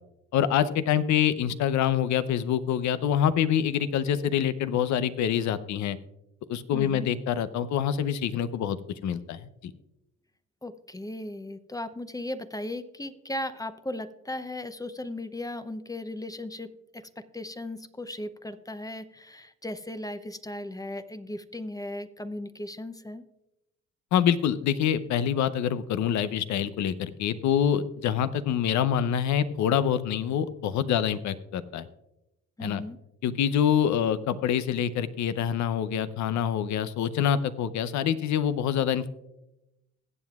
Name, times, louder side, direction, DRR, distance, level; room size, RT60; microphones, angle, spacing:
voice 1, 0.3-6.0 6.5-8.8 9.0-9.5 24.1-31.8 32.6-32.8 33.2-39.1, left 9 dB, 75° left, 14 dB, 0.7 m, -26 dB
voice 2, 6.7-7.1 10.6-23.3 32.6-33.0, left 1 dB, 10° left, 11 dB, 0.6 m, -37 dB
22.0 x 7.4 x 2.4 m, 0.90 s
supercardioid pair, 65°, 29 cm